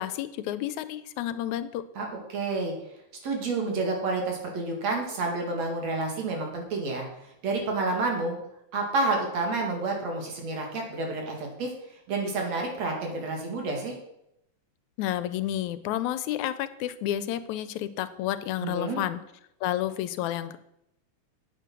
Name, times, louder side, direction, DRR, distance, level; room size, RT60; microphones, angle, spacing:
voice 1, 0.0-1.8 15.0-19.2 19.6-20.6, left 12 dB, 85° left, 13 dB, 2.0 m, -30 dB
voice 2, 2.0-2.7 3.2-7.1 7.4-8.4 8.7-11.7 12.1-13.9 18.6-19.0, right 3 dB, 65° right, 1 dB, 3.4 m, -29 dB
9.4 x 8.3 x 6.1 m, 0.80 s
omnidirectional pair, 3.4 m